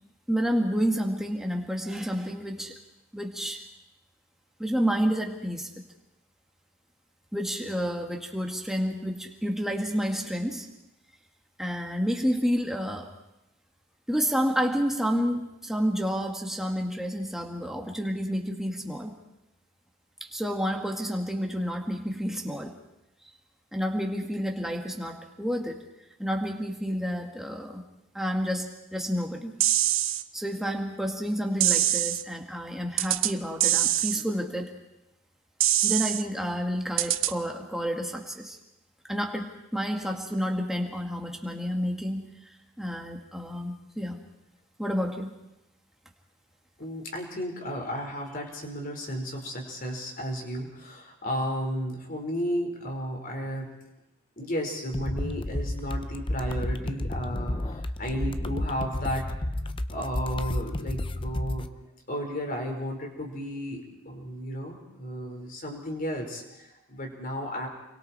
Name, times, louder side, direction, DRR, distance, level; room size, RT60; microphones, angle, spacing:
voice 1, 0.3-2.8 3.1-3.7 4.6-5.8 7.3-10.7 11.6-13.1 14.1-19.2 20.2-22.8 23.7-25.8 26.2-27.8 28.1-29.6 30.3-34.7 35.8-38.6 39.1-44.2 44.8-45.4, equal, ahead, 1 dB, 2.1 m, -30 dB
minimal drumloop just hihats, 29.6-30.2 31.6-32.2 33.0-33.3 33.6-34.2 35.6-36.2 37.0-37.3, right 13 dB, 70° right, 0.9 m, -24 dB
voice 2, 46.8-53.7 54.4-59.3 59.9-61.7 62.1-67.7, equal, 40° left, 2 dB, 4.5 m, -33 dB
sound 1, 54.9-61.7, left 1 dB, 25° left, 0.7 m, -31 dB
29.5 x 23.0 x 4.4 m, 0.91 s
head